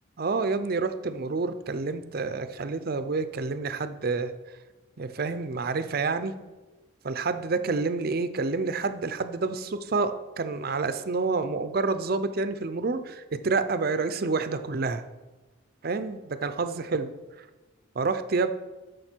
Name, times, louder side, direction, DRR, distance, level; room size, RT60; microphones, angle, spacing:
voice 1, 0.2-4.3 5.0-6.3 7.0-15.0 15.8-17.1 17.4-17.5 17.9-18.5, right 4 dB, 50° right, 11 dB, 0.5 m, -28 dB
12.5 x 5.1 x 4.5 m, 1.2 s
head